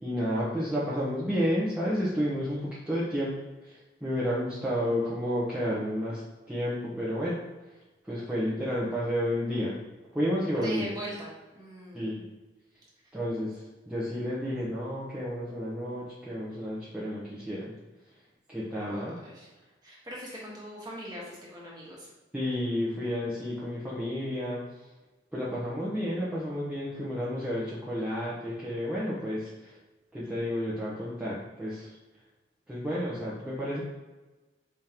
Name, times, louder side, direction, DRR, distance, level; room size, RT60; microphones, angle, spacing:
voice 1, 0.0-3.3 3.6-6.2 6.5-7.4 8.0-9.8 10.1-10.9 11.9-12.2 13.1-17.7 18.5-19.2 22.3-24.6 25.3-29.8 30.1-31.9 32.7-33.8, equal, 5° right, -9 dB, 0.8 m, -31 dB
voice 2, 10.5-12.3 18.8-22.1, right 1 dB, 25° right, -5 dB, 1.4 m, -41 dB
5.0 x 3.6 x 2.9 m, 1.1 s
head